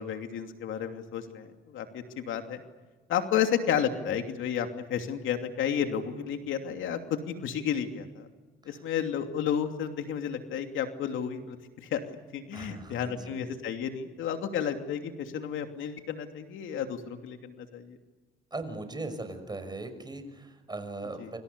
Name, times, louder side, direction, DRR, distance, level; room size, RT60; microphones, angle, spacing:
voice 1, 0.0-2.6 3.1-8.3 8.6-12.0 12.3-18.0 21.2-21.3, left 8 dB, 80° left, 5 dB, 2.9 m, -32 dB
voice 2, 12.5-13.4 18.5-21.4, right 2 dB, 20° right, 8 dB, 6.2 m, -39 dB
29.5 x 26.0 x 6.8 m, 1.3 s
cardioid pair, 90°, 20 cm